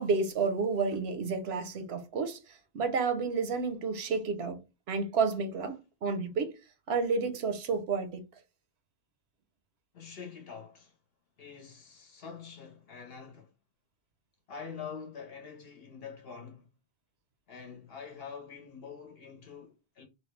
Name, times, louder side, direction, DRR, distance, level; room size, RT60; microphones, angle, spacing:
voice 1, 0.0-6.6 6.9-8.3, right 4 dB, 80° right, 0.9 m, -31 dB
voice 2, 9.9-10.9 11.4-13.5 14.5-16.7 17.5-20.0, left 6 dB, 65° left, 1.0 m, -45 dB
3.1 x 2.2 x 3.1 m
omnidirectional pair, 1.1 m